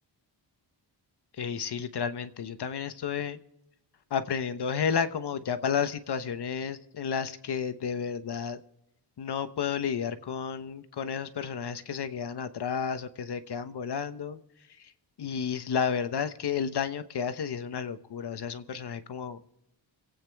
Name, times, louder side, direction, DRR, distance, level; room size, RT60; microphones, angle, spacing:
voice 1, 1.4-3.4 4.1-8.6 9.2-14.4 15.2-19.4, left 7 dB, 70° left, 10 dB, 1.1 m, -32 dB
27.0 x 9.0 x 3.5 m, 0.88 s
wide cardioid pair, 135°, 42 cm